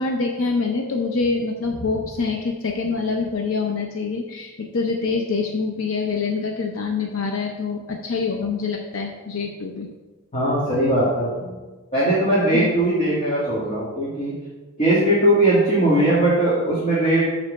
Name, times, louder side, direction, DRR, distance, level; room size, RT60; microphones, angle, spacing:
voice 1, 0.0-9.9 12.5-12.7, left 4 dB, 70° left, 2 dB, 0.7 m, -25 dB
voice 2, 10.3-11.6 11.9-14.3 14.8-17.3, right 1 dB, 35° left, -8 dB, 1.9 m, -19 dB
5.5 x 5.2 x 6.3 m, 1.2 s
head